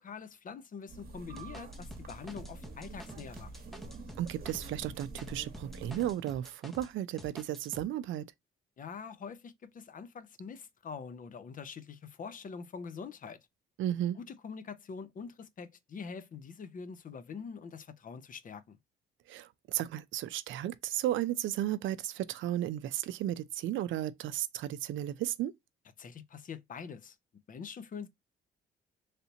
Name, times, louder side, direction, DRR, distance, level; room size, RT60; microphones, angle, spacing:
voice 1, 0.0-3.5 8.8-13.4 14.2-18.8 26.0-27.2 27.5-28.1, left 6 dB, 45° left, 0.6 m, -44 dB
sound 1, 0.9-6.1, right 2 dB, 50° right, 1.0 m, -47 dB
sound 2, 1.4-6.9 7.2-7.8, equal, ahead, 0.6 m, -49 dB
voice 2, 4.2-8.3 13.8-14.2 19.3-25.5, right 12 dB, 75° right, 0.4 m, -34 dB
3.3 x 2.8 x 2.7 m
cardioid pair, 90°, 20 cm